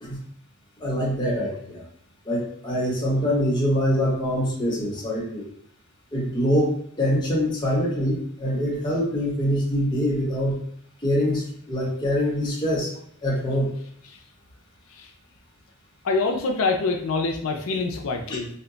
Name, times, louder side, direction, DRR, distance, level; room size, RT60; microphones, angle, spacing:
voice 1, 0.8-1.8 2.2-5.5 6.1-10.6 11.0-12.9 13.2-13.7, equal, 20° left, -5 dB, 0.9 m, -24 dB
voice 2, 16.0-18.5, left 3 dB, 85° left, 2 dB, 0.4 m, -25 dB
2.9 x 2.2 x 3.8 m, 0.68 s
head